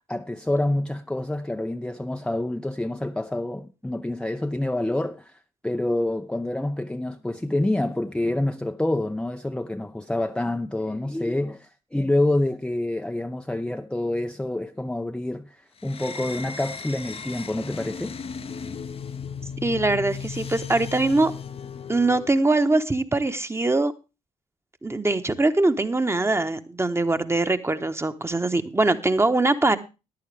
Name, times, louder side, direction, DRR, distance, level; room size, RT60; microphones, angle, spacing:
voice 1, 0.1-18.2, left 1 dB, 5° left, 0.6 m, -27 dB
sound 1, 15.8-22.4, left 6 dB, 35° left, 0.8 m, -36 dB
voice 2, 19.6-21.3 21.9-23.9 24.8-29.8, right 2 dB, 15° right, 1.2 m, -22 dB
14.5 x 10.5 x 3.4 m
hypercardioid pair, 45°, 16 cm